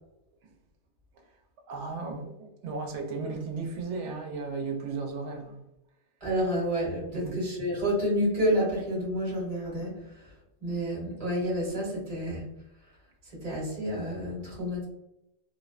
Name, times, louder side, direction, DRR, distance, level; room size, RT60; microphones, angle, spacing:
voice 1, 1.7-5.6 7.1-7.4, right 4 dB, 80° right, 0.9 m, -35 dB
voice 2, 6.2-10.0 10.6-12.4 13.4-14.8, equal, 30° right, 1.0 m, -29 dB
2.5 x 2.0 x 2.3 m
omnidirectional pair, 1.2 m